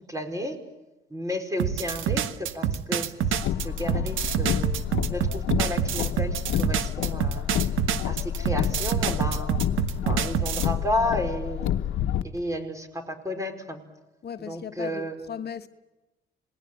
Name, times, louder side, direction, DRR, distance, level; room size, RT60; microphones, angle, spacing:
voice 1, 0.1-0.6 1.1-4.7 5.1-7.5 8.0-9.7 10.0-11.7 12.2-13.8 14.5-15.3, left 1 dB, 15° right, 5.0 m, -32 dB
sound 1, 1.6-10.7, right 9 dB, 85° right, 1.5 m, -27 dB
Car, 3.2-12.2, left 11 dB, 80° left, 1.1 m, -29 dB
voice 2, 14.2-15.7, left 8 dB, 55° left, 1.3 m, -37 dB
27.5 x 20.0 x 9.1 m
cardioid pair, 90°, 20 cm